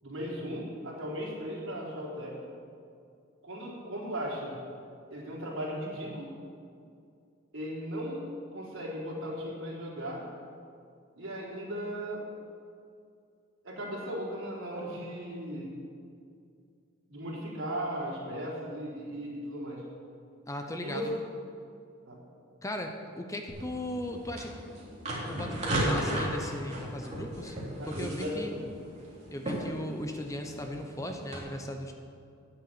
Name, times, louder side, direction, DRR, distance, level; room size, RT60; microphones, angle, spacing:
voice 1, 0.0-2.3 3.4-4.5 5.1-6.3 7.5-8.3 8.5-10.2 11.2-12.2 13.6-15.7 17.1-19.8 20.8-21.1 22.0-22.2 27.8-28.7, equal, 70° right, -5 dB, 4.0 m, -37 dB
voice 2, 20.5-21.0 22.6-24.6 25.3-27.6 27.8-28.5 29.3-31.9, left 1 dB, 15° left, 4 dB, 0.8 m, -37 dB
sound 1, 23.5-31.4, right 1 dB, 35° right, 3.4 m, -35 dB
9.9 x 9.1 x 8.7 m, 2.4 s
head